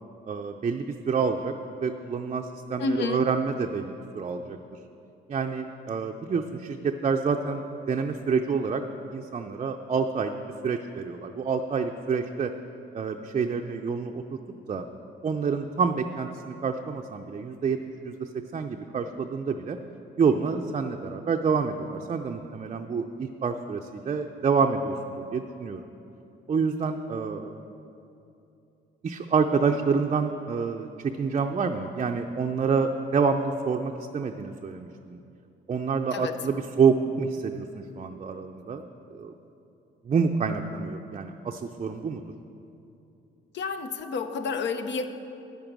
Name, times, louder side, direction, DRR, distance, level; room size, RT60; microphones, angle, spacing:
voice 1, 0.3-1.5 1.8-4.6 5.3-8.8 9.1-10.3 10.6-12.5 12.9-14.2 14.7-14.8 15.2-17.8 18.0-19.8 20.2-25.8 26.5-27.5 29.0-35.2 35.7-38.8 39.1-39.3 40.0-42.2, right 5 dB, 35° right, 4 dB, 0.5 m, -27 dB
voice 2, 2.8-3.3 36.1-36.4 43.5-45.1, left 4 dB, 65° left, 9 dB, 0.8 m, -29 dB
9.3 x 9.0 x 6.1 m, 2.8 s
cardioid pair, 90°, 20 cm